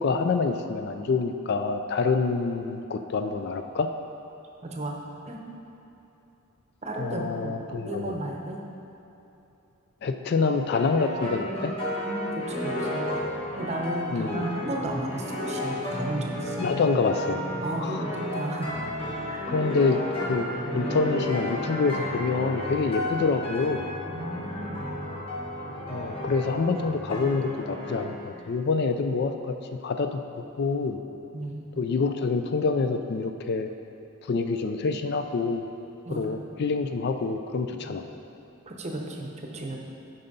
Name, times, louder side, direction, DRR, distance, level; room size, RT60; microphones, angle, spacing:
voice 1, 0.0-3.9 7.0-8.2 10.0-11.7 14.1-14.5 16.6-17.4 17.8-18.1 19.5-20.0 20.3-20.5 20.7-23.9 25.9-29.5 29.8-30.2 30.6-31.0 31.8-33.7 34.2-35.6 36.1-38.0, left 4 dB, 50° left, 7 dB, 0.3 m, -26 dB
voice 2, 4.6-5.0 5.2-5.4 6.8-8.6 12.0-13.2 13.6-16.7 17.6-18.7 19.3-19.5 24.0-24.9 31.3-31.7 36.0-36.2 37.8-38.0 38.7-39.8, right 1 dB, 30° right, 0 dB, 0.8 m, -34 dB
sound 1, 10.7-28.3, left 1 dB, 25° left, 1.4 m, -32 dB
8.8 x 5.5 x 4.0 m, 2.9 s
head